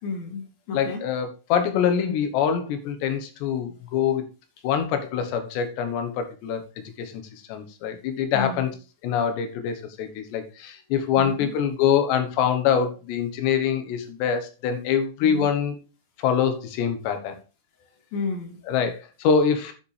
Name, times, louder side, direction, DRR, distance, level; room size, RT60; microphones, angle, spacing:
voice 1, 0.0-1.0 8.3-8.7 11.2-11.5 15.2-15.5 18.1-18.6, left 4 dB, 65° left, 3 dB, 3.7 m, -31 dB
voice 2, 0.7-4.2 4.6-7.1 7.5-8.7 9.0-15.8 16.2-17.4 18.7-19.7, left 7 dB, 85° left, 7 dB, 3.6 m, -24 dB
10.0 x 7.1 x 3.4 m, 0.32 s
omnidirectional pair, 4.8 m